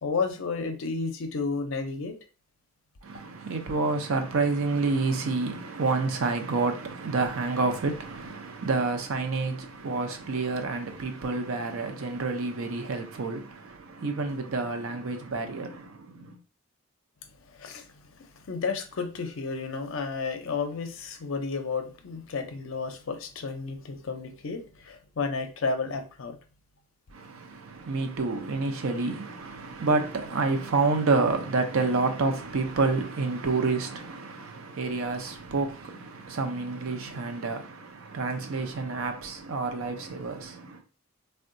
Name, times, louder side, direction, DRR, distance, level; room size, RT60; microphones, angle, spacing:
voice 1, 0.0-2.1 17.5-17.9 18.5-26.4, left 4 dB, 60° left, 0.5 m, -32 dB
voice 2, 3.0-16.4 27.1-40.8, right 3 dB, 65° right, 0.5 m, -29 dB
3.6 x 2.1 x 2.5 m
head